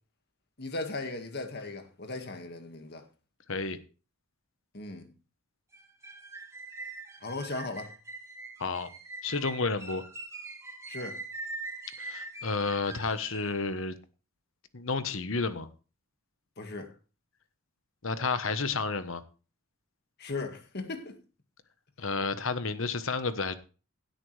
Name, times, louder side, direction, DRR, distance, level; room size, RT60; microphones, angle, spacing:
voice 1, 0.6-3.0 4.7-5.1 7.2-7.9 10.9-11.2 16.6-16.9 20.2-21.2, left 3 dB, 50° left, 1.9 m, -37 dB
sound 1, 5.7-13.6, right 2 dB, 15° right, 1.5 m, -43 dB
voice 2, 9.2-10.0 12.0-13.9 14.7-15.7 18.0-19.2 22.0-23.5, left 4 dB, 65° left, 1.2 m, -31 dB
16.5 x 8.6 x 3.4 m
head